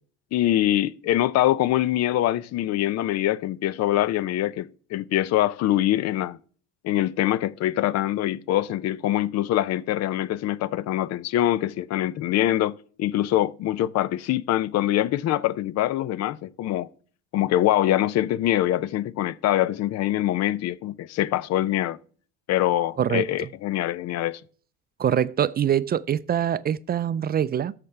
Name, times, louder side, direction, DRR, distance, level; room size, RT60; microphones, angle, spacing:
voice 1, 0.3-6.4 6.8-16.9 17.3-22.0 22.5-24.4, left 13 dB, 60° left, 0.6 m, -24 dB
voice 2, 25.0-27.7, right 9 dB, 35° right, 0.4 m, -24 dB
13.5 x 5.8 x 3.3 m
supercardioid pair, 80°, 29 cm